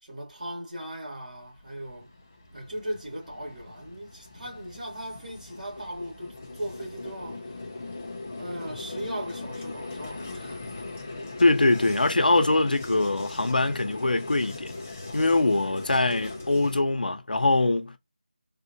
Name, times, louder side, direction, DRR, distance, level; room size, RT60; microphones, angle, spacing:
voice 1, 0.0-2.1 2.5-7.5 8.4-10.6 16.0-16.5, right 1 dB, 55° right, 2.2 m, -38 dB
Vehicle, 1.2-16.8, left 2 dB, 15° left, 0.4 m, -40 dB
voice 2, 11.4-14.7 15.1-18.0, left 2 dB, 70° left, 0.8 m, -23 dB
3.6 x 2.4 x 2.8 m
figure-of-eight pair, 175°, 5 cm